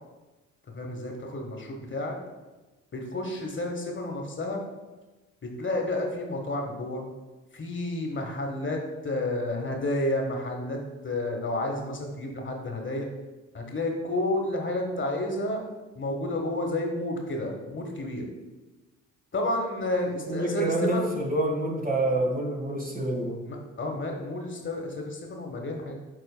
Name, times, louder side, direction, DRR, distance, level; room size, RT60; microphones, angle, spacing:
voice 1, 0.7-2.1 2.9-4.6 5.4-7.1 7.5-10.8 11.0-13.1 13.5-15.6 15.9-18.3 19.3-21.0 23.4-25.9, left 1 dB, 30° left, 1 dB, 1.4 m, -30 dB
voice 2, 20.3-23.4, right 1 dB, 20° right, 1 dB, 1.7 m, -27 dB
12.0 x 4.2 x 2.2 m, 1.2 s
hypercardioid pair, 50°, 39 cm